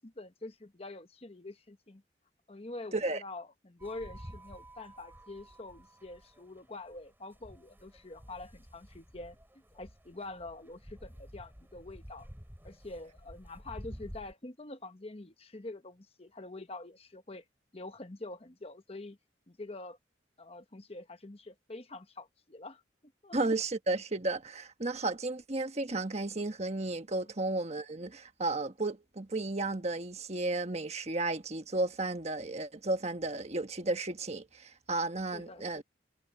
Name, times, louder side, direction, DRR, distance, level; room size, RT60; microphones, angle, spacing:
voice 1, 0.0-2.0 2.5-9.4 9.7-12.3 12.6-17.4 17.7-19.2 19.5-20.0 20.4-23.4 27.2-27.3 35.3-35.8, left 2 dB, 30° left, 1.1 m, -46 dB
sound 1, 3.8-14.3, equal, 10° right, 4.6 m, -51 dB
voice 2, 23.3-35.8, right 2 dB, 35° right, 1.3 m, -33 dB
head